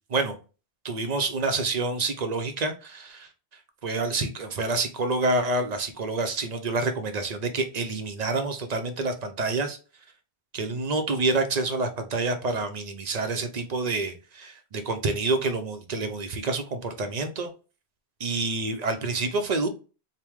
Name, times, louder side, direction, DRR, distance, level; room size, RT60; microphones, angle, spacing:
voice 1, 0.8-3.3 3.8-9.8 10.5-17.5 18.2-19.7, right 3 dB, 45° right, 0.7 m, -28 dB
4.6 x 2.2 x 3.5 m
omnidirectional pair, 1.1 m